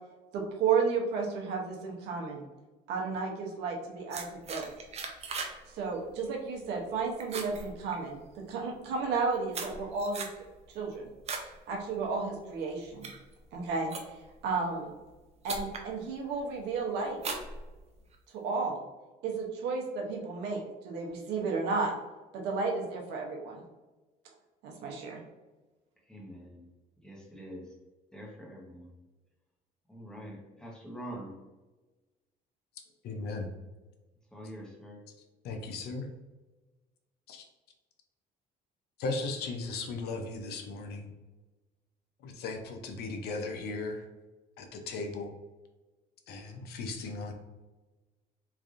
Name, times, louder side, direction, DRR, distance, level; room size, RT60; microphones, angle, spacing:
voice 1, 0.3-2.4 2.9-4.7 5.7-10.3 10.7-11.1 11.7-13.1 13.5-13.9 14.4-14.9 15.4-17.2 18.4-18.8 19.2-21.9 22.3-23.6 24.6-25.2, right 4 dB, 85° right, 0 dB, 0.8 m, -32 dB
sound 1, 4.1-5.6 5.9-6.2 6.6-6.9 7.2-8.4 9.0-11.5 11.9-12.3 12.8-14.4 15.1-15.2 15.4-15.9 16.4-16.7 17.2-18.2, right 4 dB, 40° right, 0.5 m, -39 dB
voice 2, 26.1-26.7 27.0-27.7 28.1-28.9 29.9-31.3 34.3-35.0, equal, 5° left, -3 dB, 0.9 m, -45 dB
voice 3, 33.0-33.5 35.4-36.1 37.3-37.5 39.0-41.1 42.2-44.0 44.6-45.3 46.3-47.3, left 3 dB, 70° left, 4 dB, 0.6 m, -37 dB
3.2 x 2.5 x 2.4 m, 1.2 s
cardioid pair, 110°, 17 cm